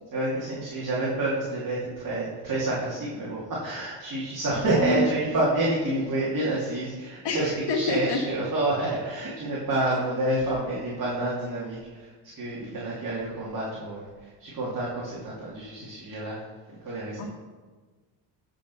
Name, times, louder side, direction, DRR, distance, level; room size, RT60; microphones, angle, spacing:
voice 1, 0.0-16.4 16.8-17.2, right 1 dB, 45° right, -7 dB, 2.8 m, -28 dB
voice 2, 4.5-5.1 7.2-8.2 17.2-17.3, left 2 dB, 55° left, 3 dB, 1.9 m, -27 dB
12.5 x 5.3 x 5.6 m, 1.4 s
cardioid pair, 95°, 47 cm